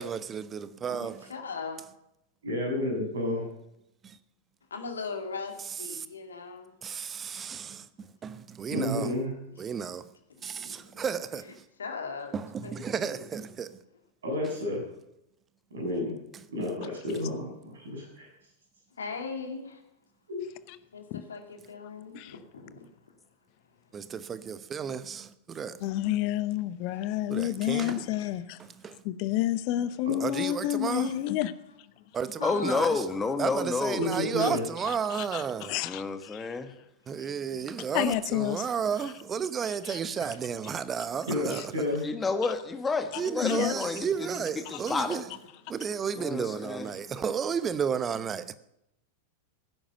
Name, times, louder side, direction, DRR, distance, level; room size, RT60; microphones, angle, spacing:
voice 1, 0.0-1.2 5.9-6.0 6.8-7.8 8.2-9.1 9.6-10.0 10.4-11.4 12.3-13.7 23.9-25.8 27.3-27.9 28.8-29.0 30.2-31.1 32.1-33.0 33.4-35.7 37.1-41.6 43.2-45.2 45.7-48.5, right 7 dB, 20° right, 0.9 m, -32 dB
voice 2, 1.0-1.8 4.7-6.7 10.5-10.6 10.9-11.4 11.8-12.4 12.6-13.2 19.0-19.8 20.9-22.8 27.6-28.3 32.4-32.9 37.2-37.6 40.2-40.4 46.6-47.2, left 4 dB, 70° left, 2.2 m, -39 dB
voice 3, 2.4-3.5 8.7-9.3 14.2-14.8 15.7-16.1 16.5-18.3 20.3-20.4 34.0-34.7 41.3-42.0, left 1 dB, 65° right, 7.5 m, -30 dB
voice 4, 25.8-28.6 29.0-31.5 34.4-34.5 34.8-36.5 37.9-38.7 39.0-39.1 39.7-40.0 41.5-41.6 43.4-43.7, left 13 dB, 45° left, 0.9 m, -30 dB
voice 5, 32.4-34.0 35.8-36.7 42.0-45.2 46.1-46.9, left 4 dB, 15° left, 1.7 m, -30 dB
17.0 x 10.0 x 6.9 m
figure-of-eight pair, 90°, 0 cm